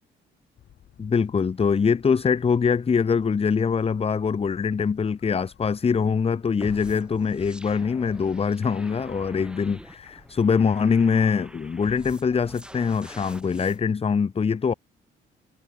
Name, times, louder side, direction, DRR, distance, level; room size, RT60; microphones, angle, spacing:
sound 1, 0.6-13.8, left 10 dB, 70° left, 7.5 m, -55 dB
voice 1, 1.0-14.7, left 6 dB, 30° left, 0.8 m, -23 dB
sound 2, 6.6-13.8, right 1 dB, 5° right, 7.0 m, -45 dB
cardioid pair, 90°, 20 cm